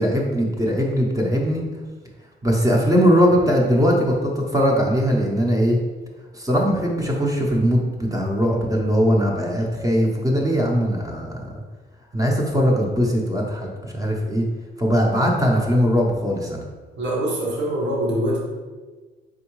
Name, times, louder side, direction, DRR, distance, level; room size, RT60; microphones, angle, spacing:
voice 1, 0.0-1.6 2.4-5.8 6.3-11.5 12.1-14.4 14.8-16.6, equal, 15° right, -2 dB, 0.8 m, -20 dB
voice 2, 17.0-18.4, right 1 dB, 65° right, -3 dB, 1.1 m, -23 dB
4.4 x 3.5 x 3.1 m, 1.3 s
cardioid pair, 90°, 20 cm